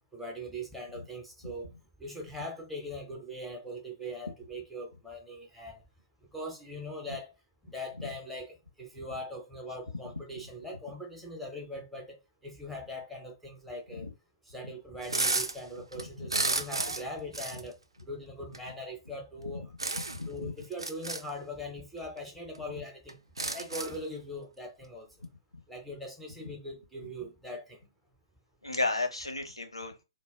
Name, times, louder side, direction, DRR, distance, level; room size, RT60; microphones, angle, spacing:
voice 1, 0.1-1.7 2.0-5.8 6.3-7.3 7.6-12.2 12.4-14.1 14.5-19.7 20.3-23.2 23.5-25.1 25.7-27.8, left 1 dB, ahead, 0.5 m, -41 dB
sound 1, 15.0-15.6 15.9-17.1 17.3-17.6 18.5-18.6 19.8-20.3 20.7-21.2 22.2-22.3 22.5-22.6 23.1-24.0, right 3 dB, 75° right, 0.4 m, -32 dB
voice 2, 20.1-20.5 28.6-30.0, left 2 dB, 80° left, 0.6 m, -33 dB
2.1 x 2.0 x 3.3 m
figure-of-eight pair, 125°, 3 cm